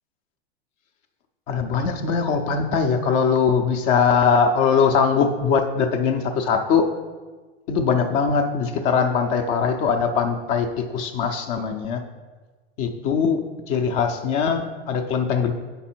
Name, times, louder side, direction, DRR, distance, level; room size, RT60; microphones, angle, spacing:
voice 1, 1.5-6.9 7.7-12.0 12.8-15.5, left 6 dB, 25° left, 6 dB, 0.4 m, -21 dB
8.1 x 5.3 x 4.3 m, 1.3 s
supercardioid pair, 150°, 33 cm